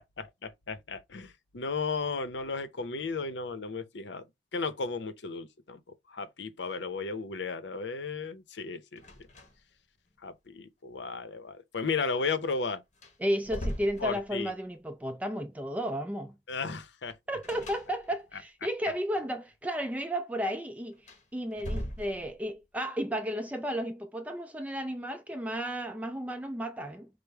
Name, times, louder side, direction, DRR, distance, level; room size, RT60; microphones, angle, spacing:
voice 1, 0.4-4.2 4.5-5.8 6.1-9.0 10.2-12.8 14.0-14.5 16.5-17.1, left 4 dB, 75° left, 0.7 m, -34 dB
sound 1, 9.0-9.8 10.1-10.2 12.4-12.5 12.9-14.7 17.4-18.4 20.9-22.6, equal, 40° left, 1.3 m, -40 dB
voice 2, 13.2-16.3 17.3-21.0 21.3-27.1, equal, 10° right, 0.3 m, -33 dB
5.0 x 2.0 x 4.5 m
head